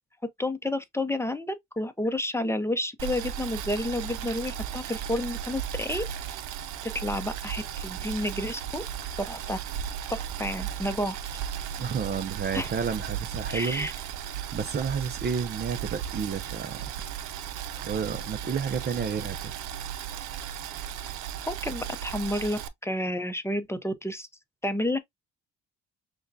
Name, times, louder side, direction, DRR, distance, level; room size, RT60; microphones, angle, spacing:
voice 1, 0.4-6.1 6.8-8.8 9.2-9.6 10.1-11.2 12.5-12.7 13.5-13.9 21.5-24.3 24.6-25.0, left 1 dB, 10° left, 0.6 m, -30 dB
Boiling, 3.0-22.7, right 9 dB, 85° right, 0.6 m, -36 dB
voice 2, 11.8-13.9 14.5-16.8 17.8-19.5, right 6 dB, 35° right, 0.5 m, -31 dB
6.3 x 2.3 x 2.6 m
cardioid pair, 90°, 30 cm